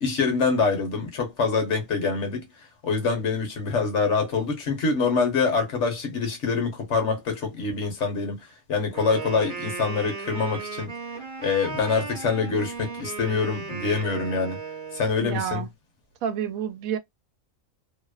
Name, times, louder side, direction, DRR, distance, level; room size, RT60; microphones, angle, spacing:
voice 1, 0.0-2.5 2.8-11.0 11.4-14.6 14.9-15.7, left 4 dB, 60° left, 1.2 m, -25 dB
Wind instrument woodwind instrument, 8.9-15.2, right 4 dB, 40° right, 0.9 m, -36 dB
voice 2, 15.2-15.7 16.2-17.0, right 8 dB, 80° right, 1.0 m, -29 dB
2.8 x 2.0 x 2.2 m
omnidirectional pair, 1.4 m